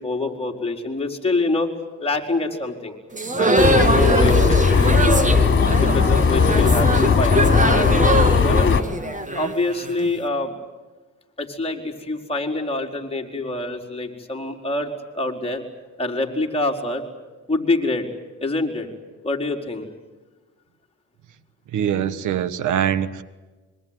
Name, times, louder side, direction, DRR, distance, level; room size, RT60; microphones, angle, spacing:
voice 1, 0.0-1.7 2.0-2.9 3.3-5.3 5.8-8.8 9.3-10.5 11.4-15.6 16.0-17.0 17.5-18.1 18.4-18.9 19.2-19.9, left 2 dB, 20° left, 1 dB, 4.6 m, -26 dB
sound 1, 3.1-10.1, right 2 dB, 25° right, 2.6 m, -22 dB
sound 2, 3.6-8.8, left 5 dB, 40° left, 3.4 m, -17 dB
voice 2, 21.7-23.2, right 9 dB, 80° right, 16 dB, 1.4 m, -23 dB
26.0 x 23.5 x 9.1 m, 1.2 s
cardioid pair, 90°, 30 cm